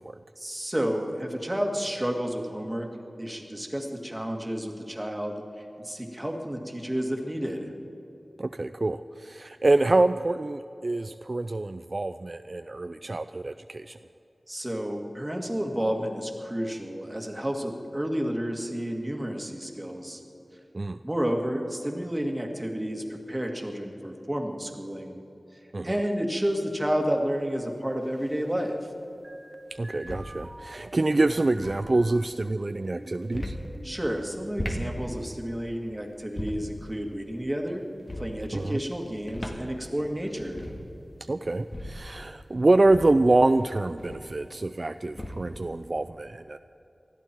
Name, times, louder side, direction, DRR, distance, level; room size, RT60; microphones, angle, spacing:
voice 1, 0.4-2.9 3.2-7.7 14.5-20.2 21.0-25.2 25.8-28.8 33.8-37.8 38.2-40.6, equal, 15° right, 2 dB, 2.0 m, -31 dB
voice 2, 8.4-14.0 20.7-21.0 25.7-26.0 29.7-33.6 38.5-38.8 41.3-46.6, right 2 dB, 50° right, 10 dB, 0.3 m, -26 dB
sound 1, 26.5-26.6 28.0-28.5 29.7-30.4 31.4-31.9 33.2-33.7 34.4-34.9 36.2-36.7 37.9-38.4 39.1-39.7 40.0-40.1 40.3-40.9 41.5-42.0 42.7-44.4 45.0-45.6, left 1 dB, 35° left, 1.9 m, -37 dB
sound 2, 29.2-32.2 32.7-34.3, right 1 dB, 35° right, 1.0 m, -46 dB
20.0 x 13.5 x 4.5 m, 2.9 s
wide cardioid pair, 50°, 0 cm